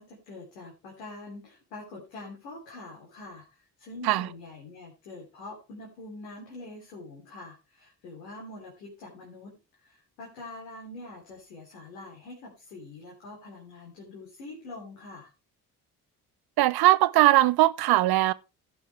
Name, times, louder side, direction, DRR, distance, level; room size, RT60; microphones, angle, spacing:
voice 1, 0.0-9.6 9.8-15.3, left 2 dB, 75° left, 3.3 m, -44 dB
voice 2, 16.6-18.3, right 16 dB, 50° right, 0.7 m, -20 dB
16.5 x 6.5 x 3.2 m
figure-of-eight pair, 45°, 48 cm